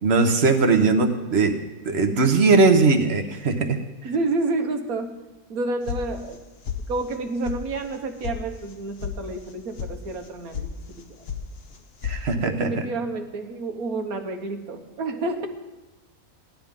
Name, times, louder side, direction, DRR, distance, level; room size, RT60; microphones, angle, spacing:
voice 1, 0.0-1.6 1.8-3.8 12.0-12.7, right 3 dB, 50° right, 5 dB, 1.3 m, -19 dB
voice 2, 4.0-5.1 5.5-6.4 6.9-11.2 12.4-15.5, right 2 dB, 80° right, 5 dB, 1.6 m, -29 dB
sound 1, 5.9-6.4 6.6-7.2 7.4-7.6 7.9-8.4 8.6-9.1 9.4-9.9 10.2-10.7 10.9-11.4 11.7-12.2, left 8 dB, 50° left, 1.0 m, -32 dB
16.5 x 12.0 x 3.7 m, 1.1 s
omnidirectional pair, 1.5 m